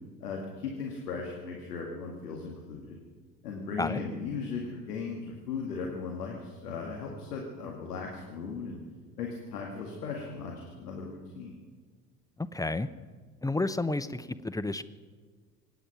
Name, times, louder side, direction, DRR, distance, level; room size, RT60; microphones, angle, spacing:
voice 1, 0.2-3.0 3.4-8.8 9.2-11.6, left 4 dB, 80° left, 0 dB, 2.1 m, -37 dB
voice 2, 12.4-12.9 13.4-14.8, left 2 dB, 10° left, 13 dB, 0.6 m, -31 dB
25.0 x 9.2 x 5.8 m, 1.5 s
figure-of-eight pair, 60°, 46 cm